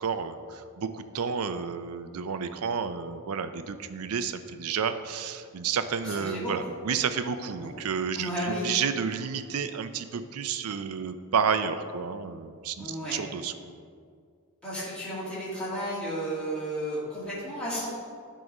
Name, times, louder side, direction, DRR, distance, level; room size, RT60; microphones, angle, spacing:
voice 1, 0.0-13.7, right 6 dB, 85° right, 10 dB, 0.5 m, -31 dB
voice 2, 6.0-6.7 7.6-7.7 8.2-8.7 12.8-13.2 14.6-17.9, equal, 5° left, -9 dB, 2.1 m, -33 dB
10.5 x 3.7 x 5.3 m, 2.1 s
head